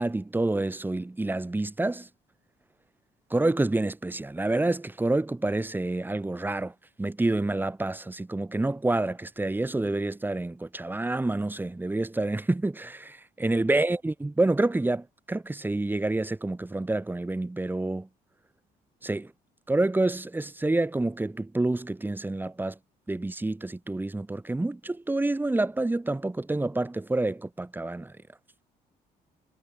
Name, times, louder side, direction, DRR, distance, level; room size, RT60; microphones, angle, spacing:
voice 1, 0.0-2.1 3.3-6.7 7.0-18.1 19.0-19.3 19.7-22.7 23.1-28.1, right 2 dB, 10° right, 3.2 m, -28 dB
cardioid pair, 110°, 17 cm